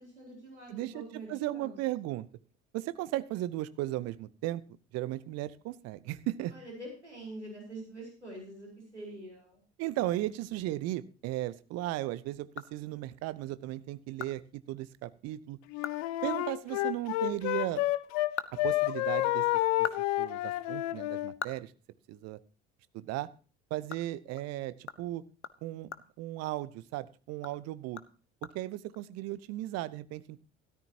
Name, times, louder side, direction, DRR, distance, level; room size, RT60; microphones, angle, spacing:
voice 1, 0.0-1.8 6.5-9.6, right 1 dB, 90° right, -3 dB, 4.5 m, -45 dB
voice 2, 0.7-2.3 2.7-4.6 4.9-6.5 9.8-15.6 16.2-17.8 18.6-19.4 19.8-19.9 20.2-21.7 22.1-22.4 22.9-23.3 23.7-25.2 25.6-25.9 26.2-28.0 28.5-30.4, right 15 dB, 50° right, 17 dB, 0.8 m, -36 dB
sound 1, 12.5-13.3 13.7-13.8 14.2-14.3 14.7-14.8 15.2-15.3 15.7-16.1 16.4-16.5 18.0-19.3 19.6-22.5 22.9-23.0 23.4-27.0 27.3-29.0, left 6 dB, 90° left, 0.6 m, -44 dB
Wind instrument woodwind instrument, 15.7-18.3 18.6-21.3, left 17 dB, 55° left, 0.7 m, -30 dB
13.5 x 13.0 x 2.8 m, 0.36 s
figure-of-eight pair, 60°, 33 cm